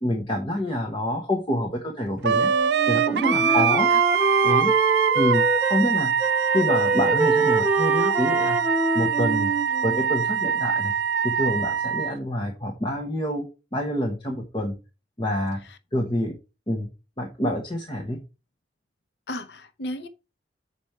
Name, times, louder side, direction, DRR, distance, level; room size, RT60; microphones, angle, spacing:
voice 1, 0.0-2.5 2.9-3.9 4.4-4.7 5.1-6.1 6.5-8.6 8.9-9.5 9.8-10.9 11.2-13.5 13.7-14.8 15.2-15.6 15.9-16.3 16.7-16.9 17.2-18.2, left 1 dB, 25° left, 1.1 m, -27 dB
Wind instrument woodwind instrument, 2.2-12.1, right 7 dB, 70° right, 0.4 m, -23 dB
Wind instrument woodwind instrument 2, 2.3-5.9 6.2-10.2, right 2 dB, 10° right, 0.6 m, -25 dB
voice 2, 3.2-4.0 15.6-15.8 19.3-20.1, equal, 65° left, 0.7 m, -35 dB
7.0 x 5.2 x 4.4 m
head